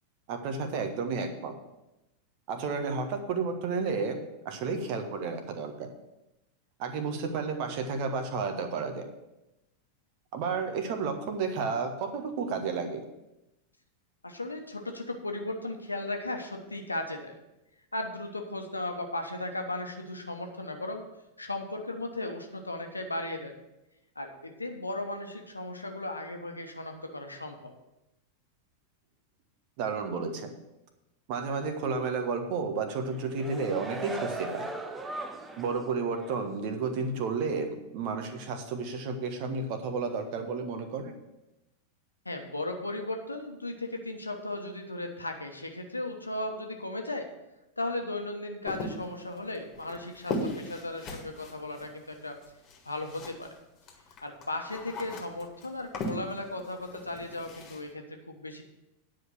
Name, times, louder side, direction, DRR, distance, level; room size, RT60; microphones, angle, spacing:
voice 1, 0.3-1.5 2.5-5.9 6.8-9.0 10.3-13.0 29.8-30.5 31.3-34.7 35.6-41.2, right 4 dB, 45° right, 6 dB, 1.4 m, -32 dB
voice 2, 14.2-17.3 17.9-21.0 21.4-23.5 24.1-27.7 42.2-47.3 47.8-52.3 52.8-53.5 54.2-58.6, left 2 dB, 80° left, 4 dB, 1.2 m, -36 dB
sound 1, 33.1-35.8 36.2-36.4, right 2 dB, 10° right, 0.9 m, -38 dB
sound 2, 48.7-53.6 53.8-57.8, left 2 dB, 30° left, 1.9 m, -38 dB
9.8 x 5.0 x 7.5 m, 0.94 s
figure-of-eight pair, 90°, 0 cm